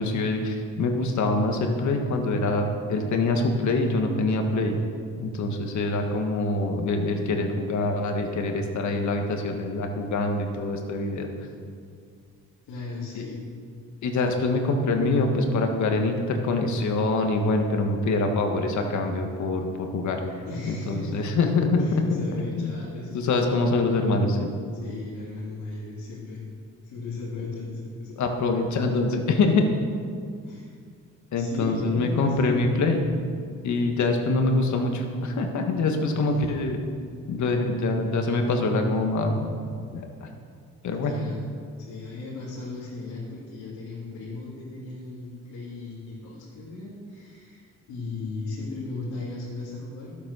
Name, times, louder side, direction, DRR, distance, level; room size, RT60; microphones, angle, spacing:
voice 1, 0.0-4.8 5.2-11.3 13.2-13.3 14.0-22.8 23.1-24.5 27.4-27.5 28.2-29.7 31.3-33.0 33.6-36.8 37.3-39.5 39.9-40.3 40.8-41.1, left 2 dB, 70° left, 4 dB, 1.7 m, -25 dB
voice 2, 12.7-13.4 20.4-21.2 21.8-23.1 24.8-26.5 26.8-28.1 30.4-30.7 31.3-32.9 36.1-36.5 41.0-41.4 41.8-50.2, left 3 dB, 90° left, -8 dB, 3.2 m, -36 dB
11.5 x 8.7 x 6.3 m, 2.2 s
cardioid pair, 90°, 30 cm